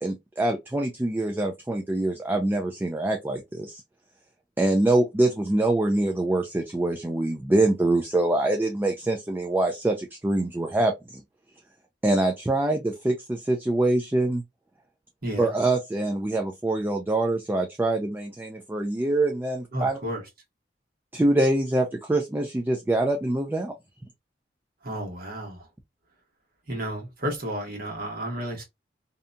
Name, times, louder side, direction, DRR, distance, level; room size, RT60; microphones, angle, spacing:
voice 1, 0.0-3.8 4.6-11.2 12.0-14.4 15.4-20.0 21.1-23.7, right 2 dB, 10° right, 0.3 m, -24 dB
voice 2, 15.2-15.5 19.7-20.2 24.8-25.7 26.7-28.6, equal, 55° right, 1.1 m, -32 dB
2.7 x 2.2 x 2.5 m
head